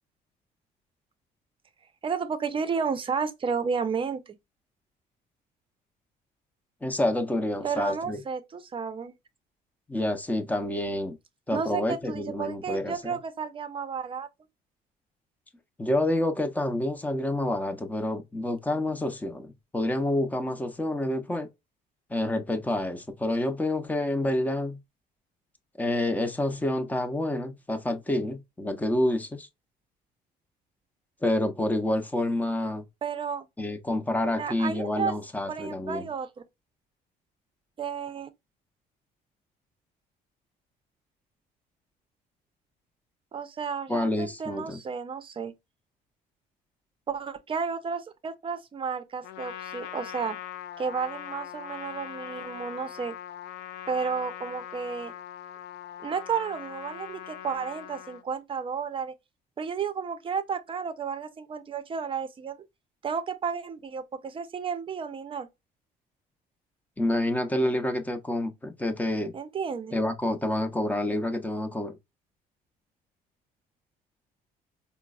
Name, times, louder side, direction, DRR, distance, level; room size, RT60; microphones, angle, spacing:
voice 1, 2.0-4.3 7.6-9.1 11.5-14.3 33.0-33.5 34.4-35.1 35.5-36.4 37.8-38.3 43.3-45.5 47.1-50.4 50.8-53.2 53.9-55.1 56.0-59.1 59.6-62.6 63.0-65.5 69.3-69.9, right 6 dB, 30° right, 0.6 m, -32 dB
voice 2, 6.8-8.2 9.9-11.2 11.5-13.2 15.8-21.5 22.1-24.8 25.8-29.5 31.2-32.8 33.6-36.1 43.9-44.8 67.0-69.3 69.9-72.0, left 1 dB, 10° left, 0.7 m, -28 dB
Trumpet, 49.2-58.2, left 11 dB, 80° left, 0.4 m, -41 dB
4.3 x 2.1 x 2.3 m
cardioid pair, 110°, 17 cm